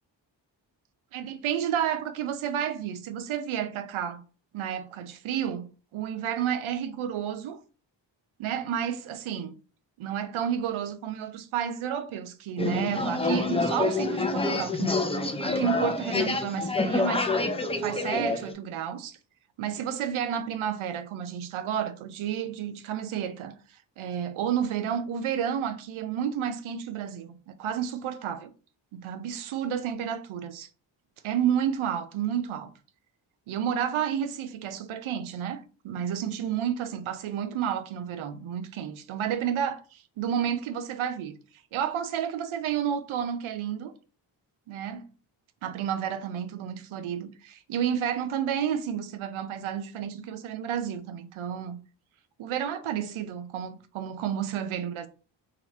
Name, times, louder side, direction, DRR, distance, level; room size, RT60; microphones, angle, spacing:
voice 1, 1.1-4.2 4.5-7.6 8.4-9.5 10.0-17.3 17.8-19.2 19.6-28.5 28.9-30.7 31.2-32.7 33.5-41.4 41.7-43.9 44.7-45.1 45.6-51.8 52.4-55.1, right 9 dB, 90° right, 0.6 m, -31 dB
sound 1, 12.6-18.5, left 3 dB, 15° left, 0.5 m, -27 dB
2.9 x 2.4 x 4.2 m
cardioid pair, 55°, 47 cm